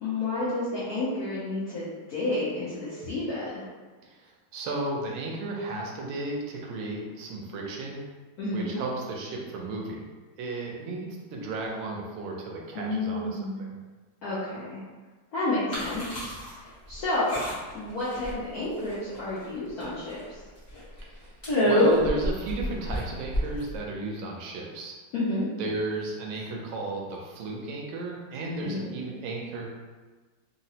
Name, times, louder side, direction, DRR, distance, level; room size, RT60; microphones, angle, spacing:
voice 1, 0.0-3.6 8.4-8.8 12.7-13.7 14.2-14.8 15.3-16.3 16.9-17.4 17.7-20.2 25.1-25.5 28.6-28.9, left 2 dB, 70° left, -9 dB, 0.9 m, -30 dB
voice 2, 4.0-8.0 8.5-10.1 10.4-13.7 21.0-21.3 21.6-24.9 25.6-29.7, right 2 dB, 85° right, -1 dB, 1.4 m, -34 dB
sound 1, 15.7-16.5 16.9-17.0 17.3-17.8 18.1-18.6 18.9-19.4 19.8-19.9 20.2-20.3 20.8-21.0 21.4-23.8, left 1 dB, 35° left, 0.7 m, -26 dB
3.7 x 2.0 x 2.7 m, 1.3 s
omnidirectional pair, 2.2 m